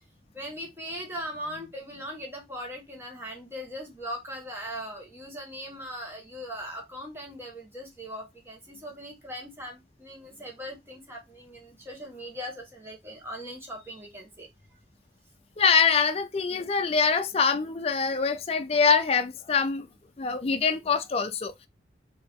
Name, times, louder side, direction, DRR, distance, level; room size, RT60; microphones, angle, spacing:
voice 1, 0.3-14.8, equal, 15° right, 1.4 m, -39 dB
voice 2, 15.6-19.9 20.2-21.7, left 5 dB, 35° left, 0.4 m, -24 dB
4.3 x 2.8 x 3.6 m
head